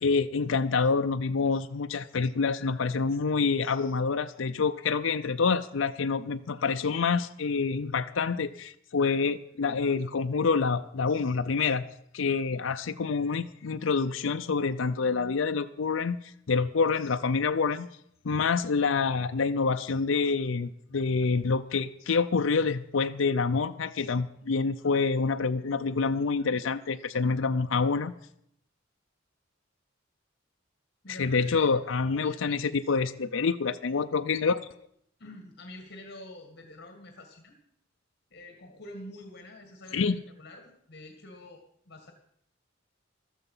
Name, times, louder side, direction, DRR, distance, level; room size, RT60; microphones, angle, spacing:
voice 1, 0.0-11.9 12.1-17.9 18.2-28.1 31.2-34.6 39.9-40.2, left 4 dB, 80° left, 7 dB, 0.6 m, -27 dB
voice 2, 31.0-31.7 32.2-32.6 35.2-37.6 38.3-42.1, left 1 dB, 55° left, 4 dB, 1.9 m, -47 dB
15.0 x 13.0 x 5.5 m, 0.71 s
head